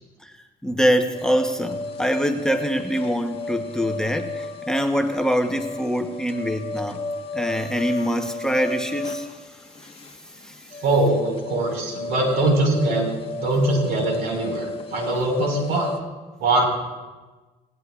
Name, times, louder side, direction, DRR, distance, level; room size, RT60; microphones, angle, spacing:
voice 1, 0.6-7.0 7.3-9.9 10.4-10.7, equal, 5° left, 6 dB, 0.9 m, -24 dB
sound 1, 1.1-16.0, left 3 dB, 35° left, 1.3 m, -33 dB
voice 2, 10.8-13.1 13.3-15.9 16.4-16.7, right 2 dB, 80° right, 1 dB, 4.8 m, -22 dB
19.0 x 17.5 x 2.4 m, 1.3 s
cardioid pair, 110°, 17 cm